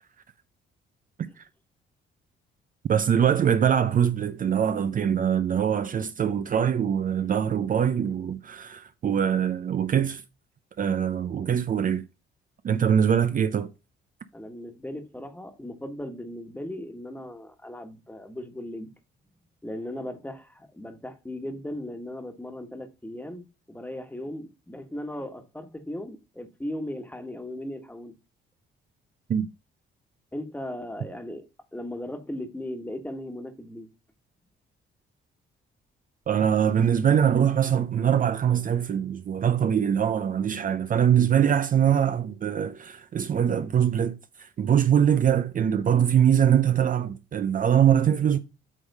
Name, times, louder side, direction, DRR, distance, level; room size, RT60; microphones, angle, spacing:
voice 1, 2.9-10.2 10.8-12.0 12.6-13.7 29.3-29.5 36.3-48.4, right 8 dB, 45° right, 0.5 m, -23 dB
voice 2, 14.3-18.9 19.6-28.1 30.3-31.5 31.7-33.9, left 1 dB, 10° left, 1.4 m, -37 dB
8.2 x 3.6 x 5.3 m
cardioid pair, 90°, 20 cm